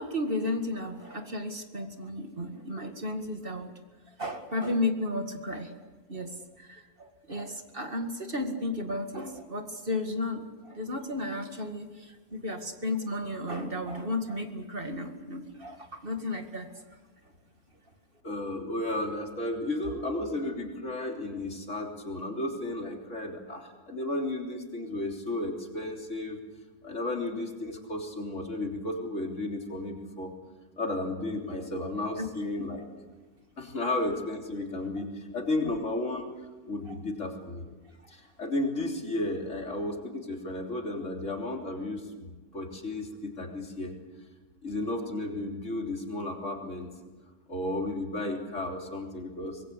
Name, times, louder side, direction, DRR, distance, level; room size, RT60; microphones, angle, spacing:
voice 1, 0.0-3.7 4.1-5.7 6.1-16.7 32.2-32.3 36.9-37.0 38.0-38.1, left 2 dB, 35° right, 5 dB, 2.3 m, -33 dB
voice 2, 18.2-26.4 26.8-30.3 30.8-32.8 33.6-36.3 36.7-37.7 38.1-43.9 44.6-46.9 47.5-49.6, left 2 dB, 50° left, 1 dB, 3.7 m, -33 dB
25.0 x 21.0 x 8.3 m, 1.3 s
omnidirectional pair, 1.6 m